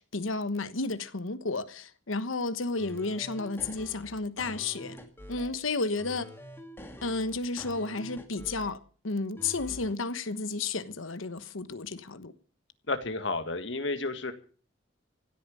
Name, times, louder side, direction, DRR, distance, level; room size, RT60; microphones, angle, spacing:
voice 1, 0.0-5.0 5.3-6.3 7.0-12.3, left 3 dB, 90° left, 1.2 m, -32 dB
sound 1, 2.8-5.6 6.0-8.8 9.4-9.9, equal, 10° left, 2.0 m, -46 dB
voice 2, 12.9-14.3, left 3 dB, 65° left, 2.0 m, -31 dB
16.0 x 9.0 x 8.5 m
head